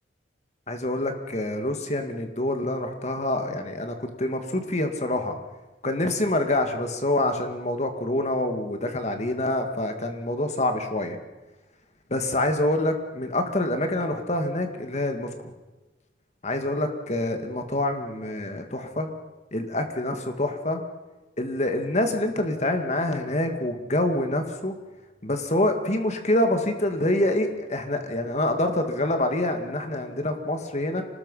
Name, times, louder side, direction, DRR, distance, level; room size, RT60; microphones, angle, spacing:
voice 1, 0.7-5.4 5.8-11.2 12.1-15.3 16.4-19.1 19.5-20.8 21.4-24.7 25.2-31.0, left 1 dB, 35° left, 6 dB, 2.2 m, -26 dB
26.0 x 19.5 x 5.7 m, 1.1 s
head